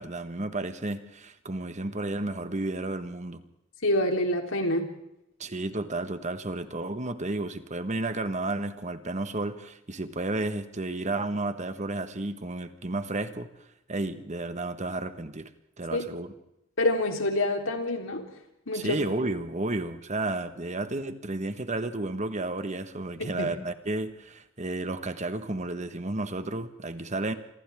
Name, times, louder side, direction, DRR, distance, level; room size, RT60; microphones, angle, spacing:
voice 1, 0.0-3.4 5.4-13.5 13.9-15.5 15.8-16.3 18.7-27.3, right 2 dB, 35° right, 9 dB, 1.5 m, -32 dB
voice 2, 3.8-4.9 15.9-16.0 16.8-18.2 18.7-19.0 23.2-23.5, left 1 dB, 70° left, 3 dB, 3.7 m, -26 dB
29.0 x 26.0 x 3.7 m, 0.82 s
head